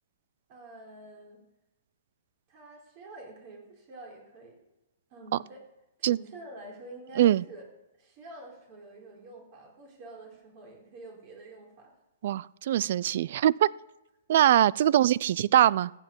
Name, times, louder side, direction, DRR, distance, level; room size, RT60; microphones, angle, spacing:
voice 1, 0.5-1.4 2.5-4.6 5.1-5.6 6.0-7.6 8.0-11.9, right 2 dB, 40° right, 4.2 m, -47 dB
voice 2, 12.2-13.7 14.3-15.9, right 12 dB, 55° right, 0.3 m, -22 dB
15.0 x 8.2 x 5.4 m
hypercardioid pair, 145°, 0 cm